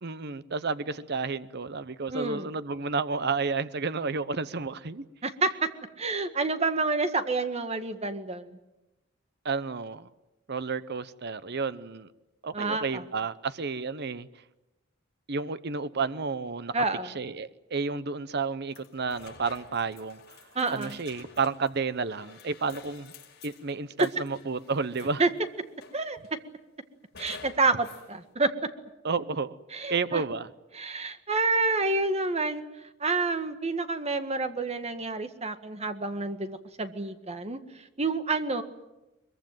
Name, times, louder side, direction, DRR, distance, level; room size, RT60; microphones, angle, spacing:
voice 1, 0.0-5.0 9.4-10.1 10.5-12.1 12.4-14.3 15.3-16.8 17.0-20.2 20.7-23.1 23.4-25.2 29.0-29.6 29.9-30.5, right 4 dB, 60° right, 0.9 m, -31 dB
voice 2, 2.1-2.5 5.2-5.7 6.0-8.6 12.5-13.0 16.7-17.1 20.5-21.0 24.0-24.1 25.2-25.3 25.9-26.2 27.2-28.5 29.7-30.2 30.7-32.6 33.0-37.6 38.0-38.6, right 3 dB, 35° right, 1.7 m, -28 dB
sound 1, 18.7-25.4 25.8-26.4 27.1-28.1, left 5 dB, 55° left, 5.7 m, -50 dB
22.5 x 22.5 x 9.3 m
head